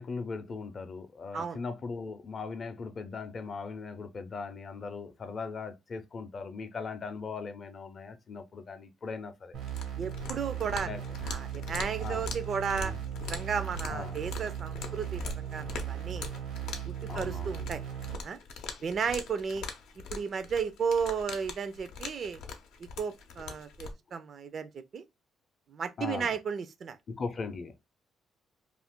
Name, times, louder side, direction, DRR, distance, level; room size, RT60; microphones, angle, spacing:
voice 1, 0.0-9.5 10.6-11.0 12.0-12.2 12.8-13.0 13.9-14.2 17.1-17.7 26.0-26.3 27.1-27.8, left 4 dB, 45° left, 0.5 m, -39 dB
sound 1, 9.5-18.2, right 10 dB, 85° right, 0.9 m, -38 dB
sound 2, 9.6-23.9, left 4 dB, 90° left, 0.6 m, -43 dB
voice 2, 10.0-10.9 11.2-12.9 13.3-16.3 16.9-17.8 18.2-18.4 18.8-19.7 20.1-22.4 23.0-25.0 25.7-27.0, right 6 dB, 55° right, 0.4 m, -34 dB
2.4 x 2.4 x 3.5 m
cardioid pair, 90°, 0 cm